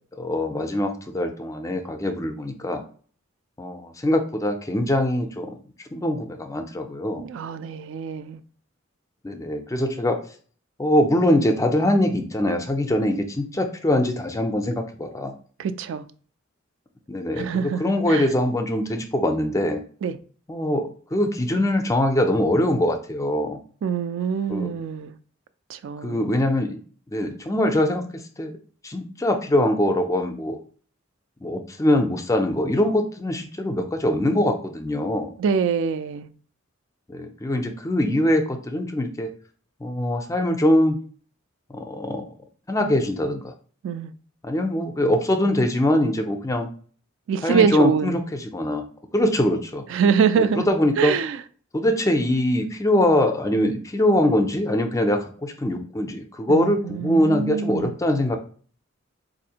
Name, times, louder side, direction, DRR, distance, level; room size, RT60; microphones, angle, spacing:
voice 1, 0.2-2.8 3.6-5.5 5.9-7.2 9.2-10.2 10.8-15.3 17.1-19.8 20.5-23.6 24.5-24.7 26.0-26.8 27.1-28.6 28.8-30.6 31.4-35.3 37.1-39.3 39.8-41.0 41.7-42.3 42.7-43.5 44.4-46.7 47.4-48.8 49.1-49.8 50.4-51.2 51.7-58.4, left 1 dB, 15° left, 0.4 m, -23 dB
voice 2, 7.2-8.4 15.6-16.0 17.4-18.3 20.0-20.2 23.8-25.1 25.7-26.3 35.4-36.3 43.8-44.1 47.3-48.2 49.9-50.7 51.0-51.4 56.5-57.9, right 6 dB, 70° right, 0.3 m, -24 dB
4.0 x 2.5 x 2.8 m
head